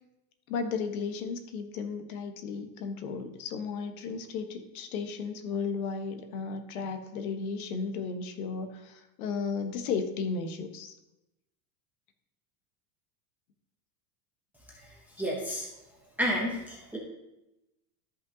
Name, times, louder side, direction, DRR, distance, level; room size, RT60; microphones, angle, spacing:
voice 1, 0.5-10.9, left 5 dB, 60° left, 7 dB, 1.2 m, -34 dB
voice 2, 15.2-15.7 16.2-17.0, equal, 5° right, -3 dB, 0.6 m, -30 dB
12.5 x 5.6 x 2.7 m, 0.92 s
supercardioid pair, 165°, 49 cm